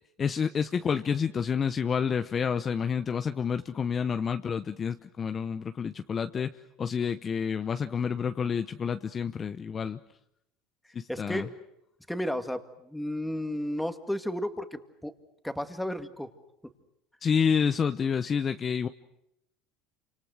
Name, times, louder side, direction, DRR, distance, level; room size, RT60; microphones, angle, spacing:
voice 1, 0.2-6.5 6.8-10.0 10.9-11.5 17.2-18.9, left 6 dB, 35° left, 9 dB, 0.9 m, -29 dB
voice 2, 11.1-11.5 12.1-15.1 15.4-16.3 16.6-16.7, left 1 dB, 5° left, 8 dB, 2.2 m, -33 dB
28.5 x 26.5 x 6.4 m, 0.81 s
supercardioid pair, 90°, 0 cm